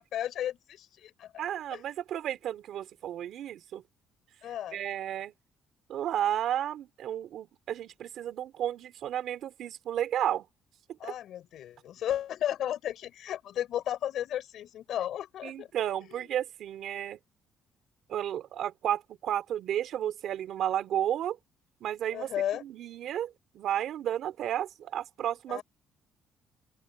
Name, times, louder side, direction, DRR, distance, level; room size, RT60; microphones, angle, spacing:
voice 1, 0.0-1.5 1.7-1.8 4.4-4.8 11.0-15.7 22.1-22.6 25.5-25.6, left 11 dB, 65° left, 6.1 m, -34 dB
voice 2, 1.4-3.8 4.7-5.3 5.9-10.4 11.0-11.1 15.4-17.2 18.1-21.4 21.8-22.3 22.6-25.6, right 11 dB, 65° right, 3.0 m, -32 dB
open air
cardioid pair, 140°, 0 cm